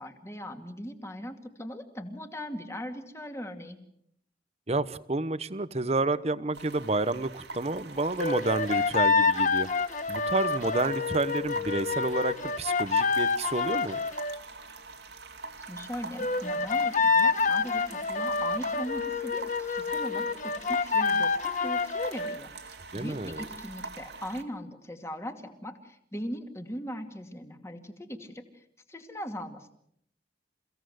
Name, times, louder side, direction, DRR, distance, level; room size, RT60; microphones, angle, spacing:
voice 1, 0.0-3.8 15.6-29.7, equal, 15° left, 6 dB, 2.3 m, -39 dB
voice 2, 4.7-9.7 10.1-14.0 22.9-23.4, right 2 dB, 35° right, 15 dB, 1.0 m, -30 dB
sound 1, 6.5-24.4, right 3 dB, 70° right, 2.5 m, -43 dB
sound 2, 8.2-14.4 16.2-22.4, left 5 dB, 45° left, 1.0 m, -27 dB
29.0 x 16.5 x 8.0 m, 0.72 s
head